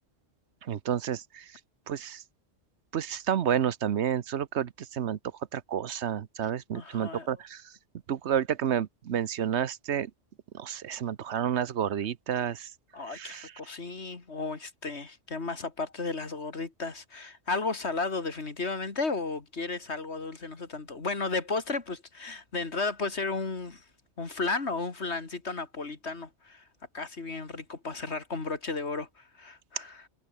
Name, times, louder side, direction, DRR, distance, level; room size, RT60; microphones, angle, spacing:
voice 1, 0.6-1.5 1.9-2.2 2.9-5.2 5.5-7.7 8.1-10.1 10.5-12.7 13.1-13.5, right 9 dB, 70° right, 1.1 m, -30 dB
voice 2, 6.7-7.3 12.9-23.8 24.2-26.6 26.9-30.1, left 3 dB, 70° left, 2.8 m, -34 dB
omnidirectional pair, 1.2 m